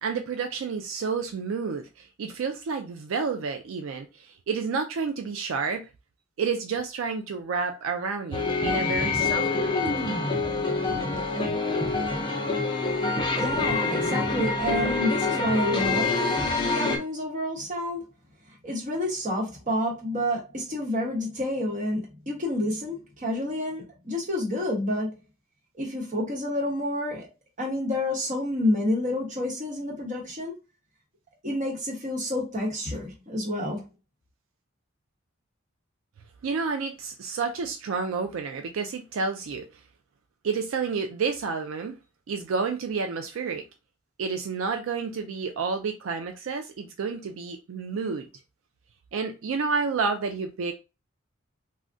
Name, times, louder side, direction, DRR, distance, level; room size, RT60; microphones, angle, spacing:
voice 1, 0.0-5.9 6.4-9.8 36.4-39.8 40.4-42.0 42.3-43.6 44.2-48.3 49.1-50.7, right 5 dB, 75° right, 0.4 m, -30 dB
sound 1, 8.3-17.0, left 3 dB, 20° left, 0.5 m, -26 dB
voice 2, 13.3-16.2 16.6-18.0 18.6-25.1 25.8-27.3 27.6-30.5 31.4-33.8, left 1 dB, 35° right, 1.0 m, -29 dB
3.4 x 2.2 x 2.5 m
head